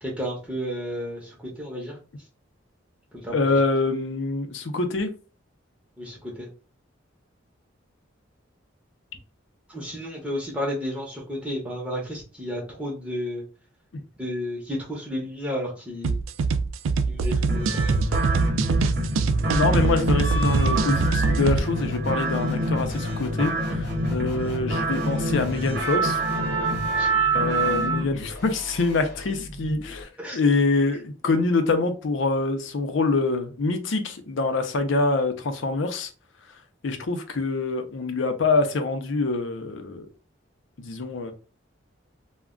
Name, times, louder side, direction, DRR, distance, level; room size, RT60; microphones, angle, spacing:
voice 1, 0.0-2.0 3.1-3.4 6.0-6.5 9.7-13.4 14.2-16.2 17.1-18.0 27.0-27.1 30.2-30.4, equal, 5° right, 0.7 m, -32 dB
voice 2, 3.3-5.1 13.9-14.0 19.5-26.2 27.3-36.1 36.8-40.1 40.8-41.3, left 3 dB, 70° left, 0.5 m, -25 dB
sound 1, 16.0-21.6, right 4 dB, 85° right, 0.3 m, -23 dB
sound 2, 17.5-28.0, right 1 dB, 55° right, 0.8 m, -26 dB
sound 3, 19.7-30.0, left 1 dB, 50° left, 1.0 m, -40 dB
2.3 x 2.1 x 3.6 m
head